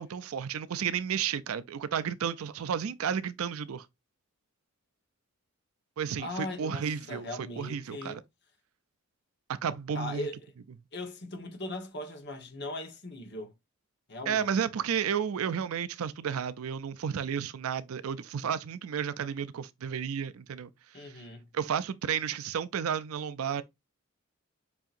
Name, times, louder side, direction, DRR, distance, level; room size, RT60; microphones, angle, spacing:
voice 1, 0.0-3.9 6.0-8.2 9.5-10.3 14.3-20.7 20.9-21.2 21.5-23.6, right 7 dB, 85° right, 0.4 m, -32 dB
voice 2, 6.2-8.2 9.9-10.4 10.9-13.5 14.1-14.5 20.9-21.5, left 1 dB, 55° left, 1.1 m, -39 dB
7.0 x 2.9 x 2.5 m
head